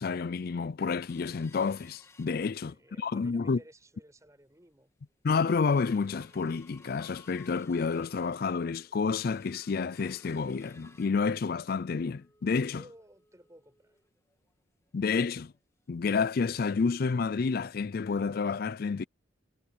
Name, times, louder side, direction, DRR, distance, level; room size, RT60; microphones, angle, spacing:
voice 1, 0.0-3.6 5.2-12.8 14.9-15.5 15.9-19.0, left 5 dB, 50° left, 0.4 m, -29 dB
sound 1, 1.1-2.9 3.4-3.5 3.8-4.1 4.6-4.7 5.1-15.6 15.9-16.0 16.4-16.6 17.1-17.2, left 3 dB, 15° left, 1.9 m, -61 dB
voice 2, 2.4-4.9 12.5-14.0, right 1 dB, 15° right, 7.3 m, -56 dB
head